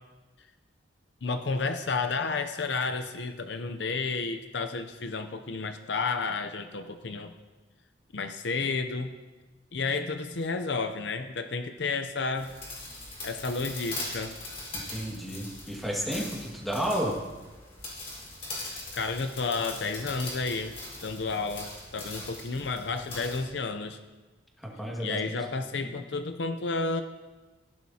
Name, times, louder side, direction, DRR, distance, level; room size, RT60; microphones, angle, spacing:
voice 1, 1.2-7.3 8.1-9.1 9.7-12.5 13.2-14.3 18.6-20.7 21.0-24.0 25.0-27.0, left 4 dB, 65° left, 8 dB, 0.6 m, -31 dB
sound 1, 12.4-23.5, left 2 dB, 35° left, 4.4 m, -41 dB
voice 2, 14.7-17.1 24.6-25.2 25.8-25.9, equal, ahead, -2 dB, 1.9 m, -32 dB
16.5 x 11.0 x 2.8 m, 1.2 s
head